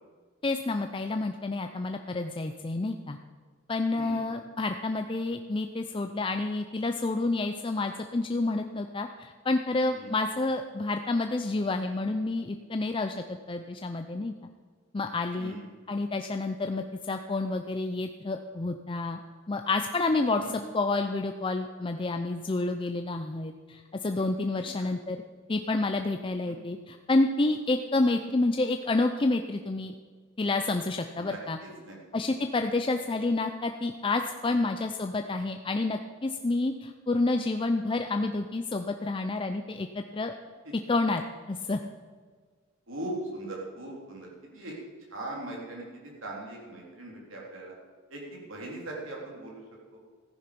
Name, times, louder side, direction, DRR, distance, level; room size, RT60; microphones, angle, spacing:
voice 1, 0.4-3.2 3.7-14.3 14.9-15.5 15.9-19.2 19.5-25.2 25.5-29.9 30.4-31.6 32.1-40.3 40.9-41.8, left 2 dB, 25° left, 6 dB, 0.5 m, -29 dB
voice 2, 31.2-32.0 42.9-44.3 44.5-44.7 45.1-45.8 46.2-47.7 48.1-49.6, right 1 dB, 75° right, -2 dB, 3.7 m, -39 dB
14.5 x 10.0 x 5.3 m, 1.5 s
head